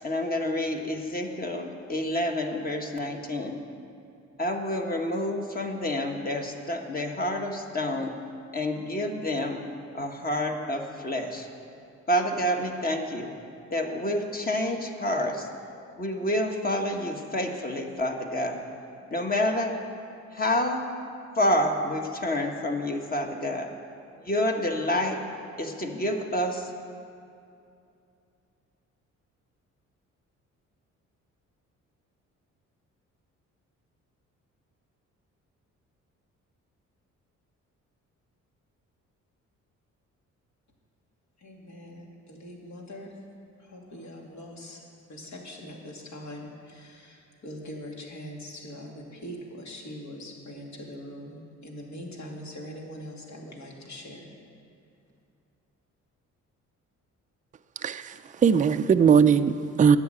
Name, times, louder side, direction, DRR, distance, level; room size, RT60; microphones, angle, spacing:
voice 1, 0.0-3.6 4.4-8.1 8.5-9.6 9.9-11.5 12.1-13.3 13.7-15.5 16.0-18.6 19.1-19.7 20.3-20.9 21.3-23.7 24.2-25.2 25.6-26.7, left 1 dB, 30° left, 3 dB, 1.4 m, -28 dB
voice 2, 41.4-43.1 43.6-44.8 45.1-54.3, equal, 65° left, -1 dB, 2.4 m, -42 dB
voice 3, 57.8-60.0, right 7 dB, 25° right, 10 dB, 0.4 m, -20 dB
10.5 x 7.4 x 8.9 m, 2.6 s
cardioid pair, 90°, 30 cm